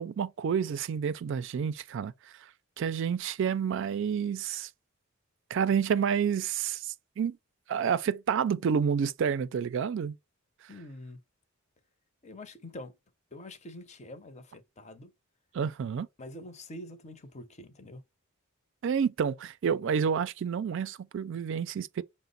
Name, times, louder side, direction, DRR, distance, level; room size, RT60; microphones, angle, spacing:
voice 1, 0.0-2.5 2.8-4.7 5.5-7.4 7.7-10.2 10.6-10.7 15.5-16.1 18.8-22.0, right 7 dB, 60° right, 0.3 m, -29 dB
voice 2, 10.7-11.2 12.2-12.9 13.3-15.1 16.2-18.0, left 1 dB, 35° left, 0.7 m, -45 dB
5.8 x 2.0 x 3.8 m
head